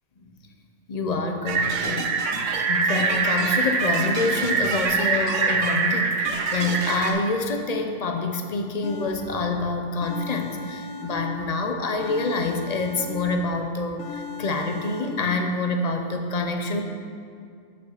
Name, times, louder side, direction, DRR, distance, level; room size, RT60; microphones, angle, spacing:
voice 1, 0.9-2.1 2.7-16.8, left 3 dB, 45° left, 5 dB, 0.5 m, -27 dB
sound 1, 1.5-7.1, right 4 dB, 75° right, 1.1 m, -24 dB
sound 2, 8.8-9.6 10.0-11.6 12.0-13.6 14.0-15.4, left 3 dB, 85° left, 1.0 m, -37 dB
6.8 x 5.5 x 6.5 m, 2.3 s
omnidirectional pair, 1.3 m